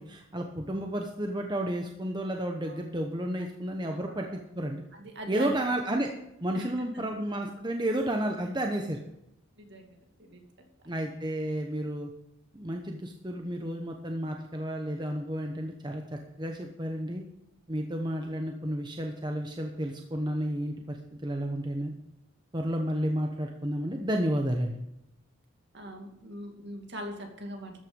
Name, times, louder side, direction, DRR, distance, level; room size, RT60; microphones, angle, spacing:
voice 1, 0.0-4.8 5.3-6.1 6.4-9.0 10.8-12.1 12.5-17.2 17.7-21.9 22.5-24.8, right 1 dB, 20° right, 3 dB, 1.0 m, -32 dB
voice 2, 3.8-4.4 5.0-5.5 5.9-6.0 6.5-6.7 9.6-10.4 25.7-27.8, equal, 55° right, 3 dB, 2.5 m, -41 dB
13.5 x 9.0 x 5.3 m, 0.85 s
head